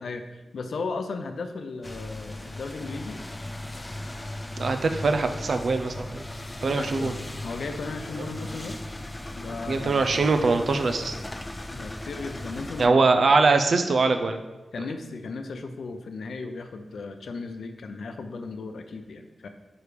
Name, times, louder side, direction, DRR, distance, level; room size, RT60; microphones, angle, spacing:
voice 1, 0.0-3.2 6.7-7.1 7.4-8.8 9.3-10.0 11.7-13.1 14.7-19.5, left 3 dB, 80° left, 7 dB, 0.5 m, -36 dB
sound 1, 1.8-12.9, left 1 dB, 15° left, 0.3 m, -37 dB
voice 2, 4.6-6.2 6.6-7.1 9.7-11.1 12.8-14.4, right 3 dB, 60° right, 7 dB, 0.5 m, -22 dB
5.0 x 4.7 x 4.9 m, 1.1 s
wide cardioid pair, 140°, 0 cm